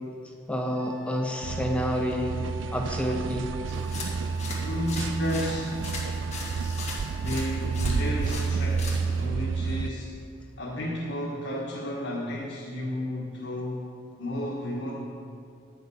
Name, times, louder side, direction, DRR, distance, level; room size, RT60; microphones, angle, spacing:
voice 1, 0.5-2.4 2.7-3.5, equal, 5° left, 1 dB, 0.7 m, -28 dB
Wind instrument woodwind instrument, 0.7-8.4, right 4 dB, 60° right, 3.0 m, -46 dB
sound 1, 1.4-9.9, right 5 dB, 85° right, 0.3 m, -30 dB
sound 2, 3.7-9.3, left 3 dB, 40° left, 2.1 m, -39 dB
voice 2, 4.6-5.8 7.2-10.1 10.6-13.8 14.2-14.9, left 1 dB, 70° left, -6 dB, 1.7 m, -32 dB
9.8 x 7.7 x 7.1 m, 2.4 s
head